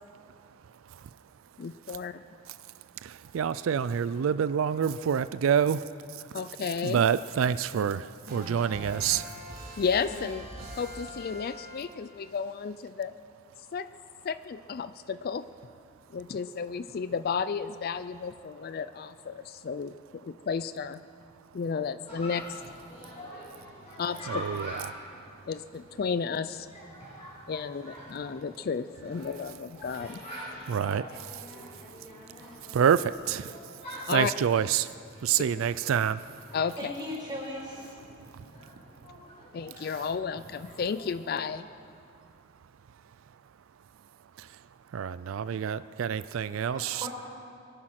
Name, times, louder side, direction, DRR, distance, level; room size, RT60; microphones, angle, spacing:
voice 1, 0.2-1.2 1.8-2.0 2.5-6.4 6.8-9.4 23.1-23.2 23.9-24.0 24.3-25.2 30.7-32.1 32.6-34.9 35.2-36.2 38.1-38.8 39.8-40.0 44.3-47.1, right 8 dB, 90° right, 14 dB, 0.4 m, -29 dB
voice 2, 1.6-2.2 6.3-7.0 9.8-10.5 10.8-13.1 13.7-13.9 14.2-15.5 16.1-21.0 21.5-22.6 24.0-24.4 25.5-26.7 27.5-30.2 34.1-34.3 36.5-36.9 39.5-41.7, left 6 dB, 50° left, 14 dB, 0.4 m, -33 dB
sound 1, 8.3-12.1, equal, 50° right, 3.9 m, -43 dB
Chatter, 22.1-41.7, equal, 30° left, 5.6 m, -46 dB
voice 3, 36.8-37.9 46.7-47.1, equal, 20° right, -4 dB, 4.8 m, -37 dB
23.5 x 10.5 x 5.9 m, 2.4 s
head